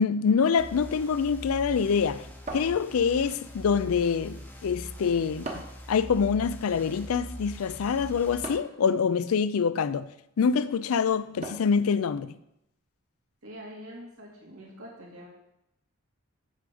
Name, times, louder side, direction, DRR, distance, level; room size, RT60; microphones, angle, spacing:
voice 1, 0.0-2.3 2.5-5.6 5.9-10.1 10.4-12.4, left 6 dB, 85° left, 0.4 m, -25 dB
sound 1, 0.6-8.4, equal, 10° left, 0.7 m, -42 dB
sound 2, 2.5-3.4 5.4-5.9 8.4-8.8 11.4-11.9, right 2 dB, 30° right, 1.0 m, -38 dB
voice 2, 13.4-15.3, equal, 85° right, 2.5 m, -44 dB
6.4 x 5.0 x 6.9 m
head